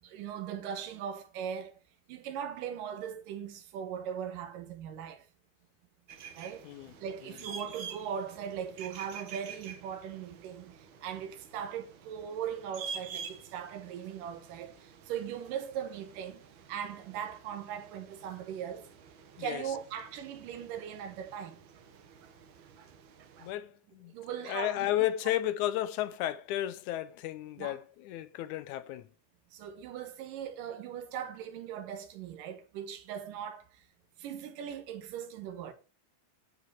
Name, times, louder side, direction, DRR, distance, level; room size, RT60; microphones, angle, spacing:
voice 1, 0.0-1.8 2.1-5.2 6.4-6.7 7.0-16.4 16.7-18.9 19.4-21.6 24.1-24.9 27.6-27.8 29.5-33.7 34.2-35.7, right 8 dB, 85° right, 2.8 m, -39 dB
sound 1, 6.1-23.5, right 6 dB, 65° right, 1.2 m, -48 dB
voice 2, 23.4-24.1 24.5-29.1, left 13 dB, 80° left, 1.9 m, -33 dB
13.5 x 5.1 x 4.4 m
omnidirectional pair, 3.7 m